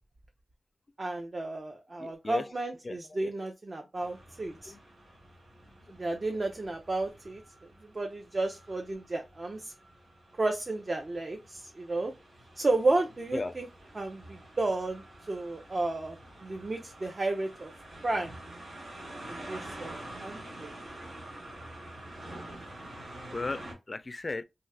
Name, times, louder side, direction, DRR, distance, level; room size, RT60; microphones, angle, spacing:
voice 1, 1.0-4.7 6.0-7.4 7.8-9.7 10.4-12.1 12.6-13.7 13.9-17.7 18.0-18.3 19.2-20.7, right 2 dB, 45° right, 0.6 m, -32 dB
voice 2, 2.0-2.5 2.8-3.0 3.2-3.3 4.7-4.8 13.3-13.5 23.3-24.4, left 3 dB, 45° left, 0.3 m, -36 dB
sound 1, 3.9-23.7, right 1 dB, 85° right, 1.4 m, -48 dB
2.7 x 2.3 x 3.2 m
cardioid pair, 45°, 0 cm